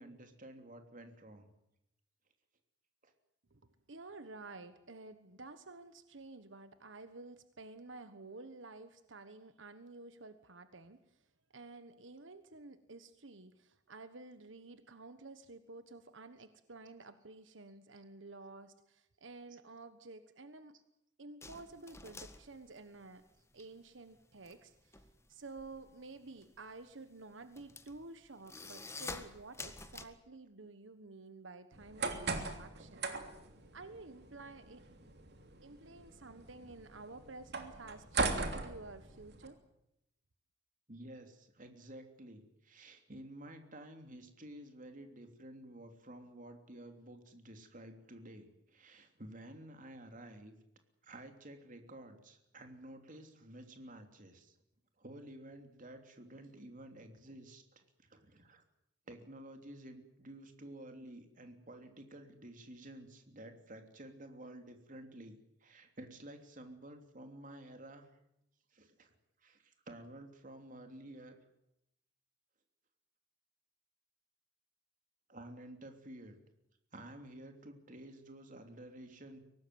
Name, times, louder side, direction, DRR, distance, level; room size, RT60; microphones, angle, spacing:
voice 1, 0.0-1.5 3.0-3.1 40.9-50.5 51.0-54.6 55.0-58.6 59.1-68.1 68.7-69.1 69.4-71.4 75.3-76.4 76.9-79.4, right 1 dB, 45° right, 5 dB, 3.2 m, -52 dB
voice 2, 3.5-11.0 11.5-20.7 21.2-23.2 23.5-25.0 25.3-33.1 33.7-34.8 35.6-39.6, right 3 dB, 85° right, 11 dB, 1.4 m, -51 dB
sound 1, 21.4-23.7 24.0-30.0, left 3 dB, 15° left, 1.7 m, -49 dB
sound 2, 31.7-39.5, right 3 dB, 60° right, 3.2 m, -40 dB
23.5 x 18.5 x 9.5 m, 0.82 s
head